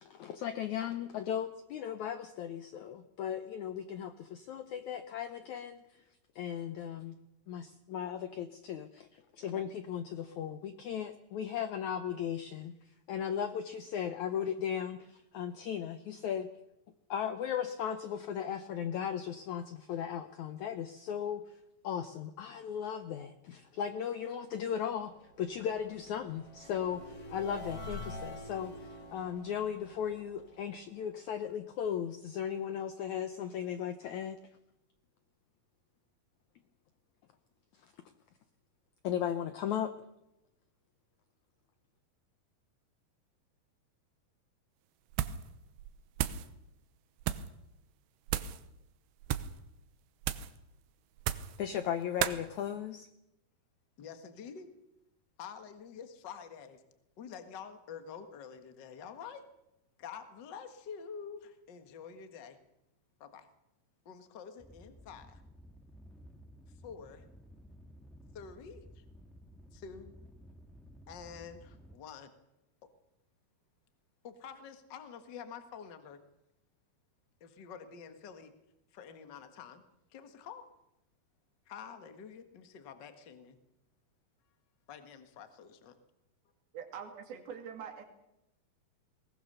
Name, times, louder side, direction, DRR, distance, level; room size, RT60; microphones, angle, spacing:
voice 1, 0.0-6.0 6.3-7.1 7.5-12.7 13.1-16.5 17.1-21.6 21.8-25.1 25.4-34.4 39.0-39.9 51.6-53.1, left 9 dB, 90° left, 9 dB, 1.6 m, -37 dB
sound 1, 24.4-31.6, left 1 dB, 40° left, 3.2 m, -48 dB
sound 2, 45.1-45.5 45.8-46.5 47.2-47.5 48.3-48.6 49.2-49.6 50.2-50.6 51.2-51.6 52.2-52.4, right 12 dB, 85° right, 3.0 m, -34 dB
voice 2, 54.0-54.7 55.4-56.8 57.2-59.4 60.0-62.6 63.2-63.5 64.0-65.4 66.7-67.3 68.3-69.0 69.7-70.1 71.1-72.3 74.2-76.2 77.4-78.5 78.9-79.8 80.1-80.6 81.6-83.6 84.9-85.9, left 7 dB, 60° left, 8 dB, 1.1 m, -48 dB
sound 3, 64.6-72.0, equal, ahead, 0.4 m, -55 dB
voice 3, 86.7-88.1, right 7 dB, 70° right, 6 dB, 4.0 m, -44 dB
21.0 x 19.0 x 6.8 m, 0.88 s
omnidirectional pair, 4.6 m